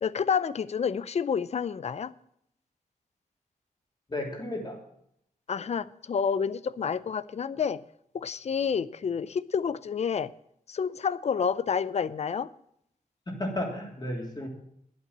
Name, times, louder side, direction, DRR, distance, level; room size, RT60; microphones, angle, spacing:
voice 1, 0.0-2.1 5.5-7.8 8.1-10.3 10.7-12.5, left 6 dB, 50° left, 0.5 m, -29 dB
voice 2, 4.1-4.8 13.3-14.5, left 1 dB, 30° left, 3.3 m, -33 dB
12.0 x 8.2 x 7.3 m
wide cardioid pair, 145°, 15 cm